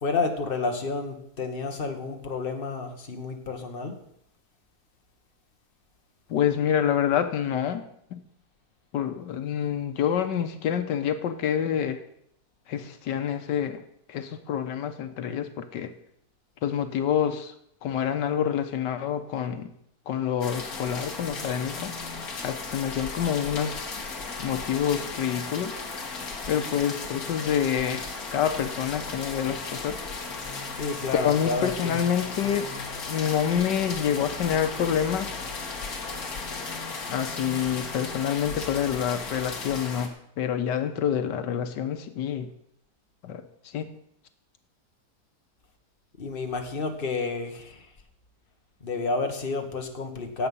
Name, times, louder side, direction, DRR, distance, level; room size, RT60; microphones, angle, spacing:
voice 1, 0.0-3.9 30.8-32.0 46.2-47.8 48.8-50.5, left 4 dB, 35° left, 4 dB, 1.6 m, -30 dB
voice 2, 6.3-7.8 8.1-8.2 8.9-12.0 12.7-13.8 14.1-15.9 16.6-17.5 17.8-19.7 20.1-25.7 26.5-30.0 31.1-32.7 33.1-35.4 37.1-42.5 43.2-43.9, left 9 dB, 85° left, 9 dB, 1.6 m, -27 dB
sound 1, 20.4-40.1, left 4 dB, 60° left, 2.1 m, -36 dB
17.0 x 7.9 x 5.5 m, 0.73 s
omnidirectional pair, 1.8 m